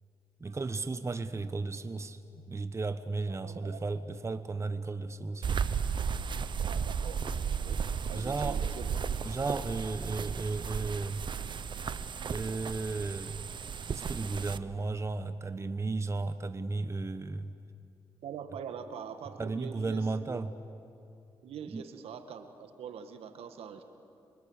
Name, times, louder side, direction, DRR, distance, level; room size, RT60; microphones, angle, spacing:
voice 1, 0.4-2.2 2.5-5.5 8.1-8.7 9.2-11.3 12.3-13.5 13.9-17.5 19.4-20.5 21.7-21.8, right 3 dB, 30° right, 11 dB, 1.1 m, -34 dB
voice 2, 3.3-3.8 6.6-8.9 18.2-20.4 21.4-23.8, right 7 dB, 80° right, 8 dB, 1.9 m, -44 dB
sound 1, 5.4-14.6, right 6 dB, 50° right, 0.9 m, -34 dB
27.5 x 23.5 x 8.2 m, 2.7 s
cardioid pair, 70°, 10 cm